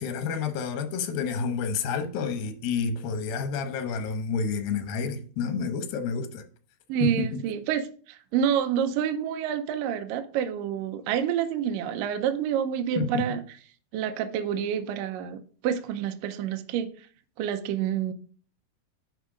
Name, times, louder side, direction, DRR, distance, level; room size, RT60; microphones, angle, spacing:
voice 1, 0.0-6.4 7.0-7.4 13.0-13.3, left 5 dB, 80° left, 2.9 m, -29 dB
voice 2, 6.9-13.4 13.9-16.9 17.4-18.1, right 9 dB, 80° right, 2.2 m, -28 dB
10.0 x 5.3 x 5.1 m
omnidirectional pair, 4.1 m